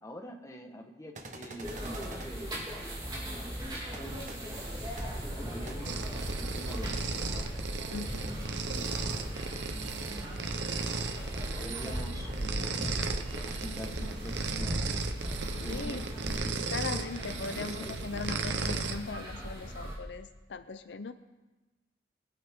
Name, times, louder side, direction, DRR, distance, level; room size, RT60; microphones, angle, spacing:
voice 1, 0.0-2.7 3.9-4.2 5.2-7.5 7.8-8.6 9.6-10.3 11.6-12.7 13.4-15.0 15.5-16.6 17.5-17.9, equal, 15° left, 2 dB, 1.3 m, -46 dB
sound 1, 1.1-2.3 3.9-4.0 4.3-4.4 5.0-5.1 5.7-5.8, right 2 dB, 45° right, 1.2 m, -45 dB
sound 2, 1.6-20.0, equal, 25° right, 3.5 m, -38 dB
sound 3, 5.8-19.0, right 4 dB, 85° right, 0.9 m, -36 dB
voice 2, 7.9-8.2 15.7-16.0 16.7-21.1, left 4 dB, 75° left, 11 dB, 0.6 m, -39 dB
22.5 x 9.4 x 3.7 m, 1.1 s
head